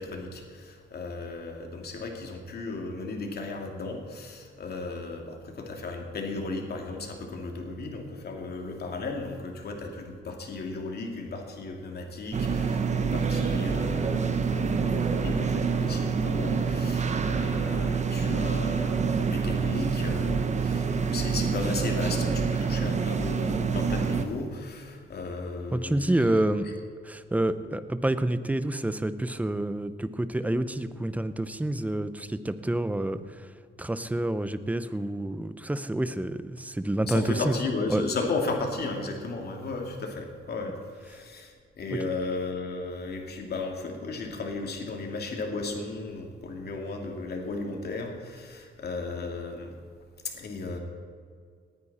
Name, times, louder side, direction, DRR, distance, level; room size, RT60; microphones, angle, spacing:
voice 1, 0.0-26.6 37.1-49.8 50.2-50.8, left 3 dB, 55° left, 2 dB, 2.7 m, -35 dB
sound 1, 12.3-24.3, right 5 dB, 35° right, 1.1 m, -27 dB
voice 2, 25.7-26.7 27.1-33.5 33.8-37.6 37.9-38.0 41.9-42.0, right 1 dB, 5° right, 12 dB, 0.8 m, -28 dB
18.5 x 10.0 x 4.3 m, 2.1 s
cardioid pair, 90°, 20 cm